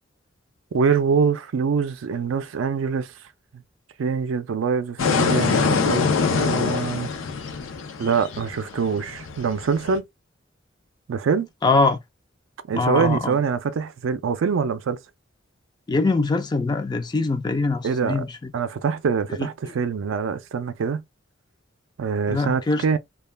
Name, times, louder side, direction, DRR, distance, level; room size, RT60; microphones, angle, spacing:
voice 1, 0.7-3.1 4.0-7.1 8.0-10.0 11.1-11.5 12.7-15.0 17.8-18.2 18.5-21.0 22.0-23.0, right 6 dB, 85° right, 0.4 m, -24 dB
sound 1, 5.0-10.0, left 5 dB, 90° left, 0.5 m, -24 dB
voice 2, 11.6-12.0 12.7-13.4 15.9-18.5 19.4-19.5 22.3-22.8, left 3 dB, 20° left, 0.3 m, -22 dB
2.3 x 2.2 x 3.2 m
head